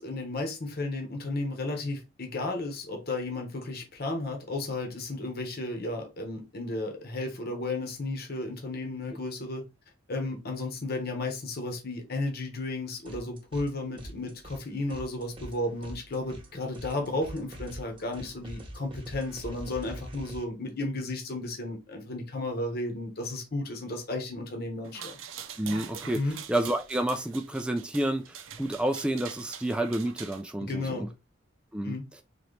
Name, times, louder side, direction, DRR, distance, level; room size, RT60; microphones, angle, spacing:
voice 1, 0.0-9.6 10.1-25.2 26.1-26.4 30.6-31.1 31.8-32.1, left 2 dB, 50° left, 1.1 m, -33 dB
sound 1, 13.0-13.7 14.0-20.4, right 1 dB, 25° right, 1.0 m, -44 dB
sound 2, 24.8-30.4, right 7 dB, 90° right, 0.6 m, -44 dB
voice 2, 25.6-31.1 31.7-32.0, right 1 dB, 5° right, 0.3 m, -30 dB
3.9 x 3.0 x 3.2 m
head